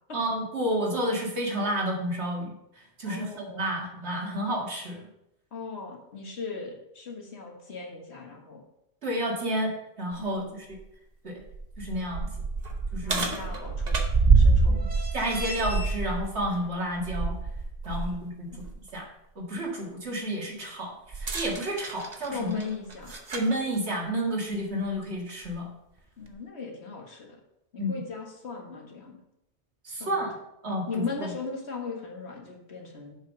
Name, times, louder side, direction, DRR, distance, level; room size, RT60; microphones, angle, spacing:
voice 1, 0.1-5.0 9.0-10.5 11.2-11.4 11.8-12.3 12.9-13.3 15.1-17.4 17.8-18.5 18.9-19.1 19.4-22.6 23.3-25.7 27.8-27.9 29.8-30.3 30.6-31.3, equal, 65° right, -1 dB, 2.1 m, -30 dB
voice 2, 3.1-3.7 5.5-8.6 10.2-10.6 13.0-14.1 14.3-14.8 17.9-18.1 22.3-23.1 26.2-27.4 27.7-29.2 29.9-30.2 30.9-33.2, left 4 dB, 65° left, 0 dB, 1.8 m, -38 dB
sound 1, 10.1-10.2 10.7-10.8 11.4-18.1 18.5-18.7 21.1-23.5 24.5-24.6 25.4-25.5, right 4 dB, 40° right, 1.0 m, -26 dB
7.4 x 5.6 x 5.2 m, 0.82 s
omnidirectional pair, 1.2 m